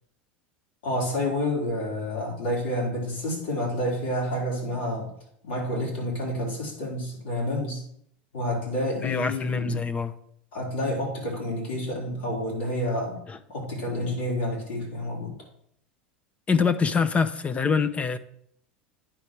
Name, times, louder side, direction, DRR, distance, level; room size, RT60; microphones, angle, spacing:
voice 1, 0.8-5.1 5.4-7.8 8.3-9.8 10.5-13.2 13.5-15.4, left 1 dB, 80° left, -3 dB, 4.0 m, -29 dB
voice 2, 9.0-10.1 13.3-13.4 16.5-18.2, left 5 dB, 25° left, 12 dB, 0.7 m, -24 dB
9.1 x 5.4 x 4.6 m, 0.68 s
hypercardioid pair, 95°, 5 cm